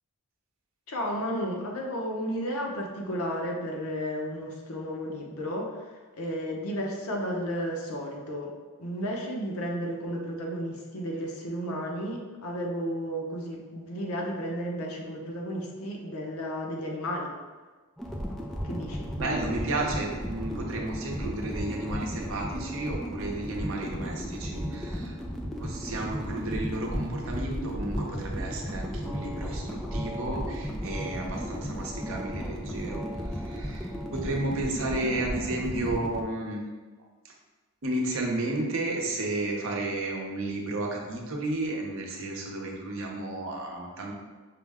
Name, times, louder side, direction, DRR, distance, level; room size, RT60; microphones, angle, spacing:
voice 1, 0.9-8.5 8.8-17.3 18.6-19.1, equal, 80° left, 0 dB, 0.8 m, -33 dB
sound 1, 18.0-36.2, equal, ahead, 0.3 m, -34 dB
voice 2, 19.2-25.2 25.6-36.6 37.8-44.1, right 2 dB, 65° right, 0 dB, 0.7 m, -32 dB
5.7 x 2.1 x 3.5 m, 1.3 s
head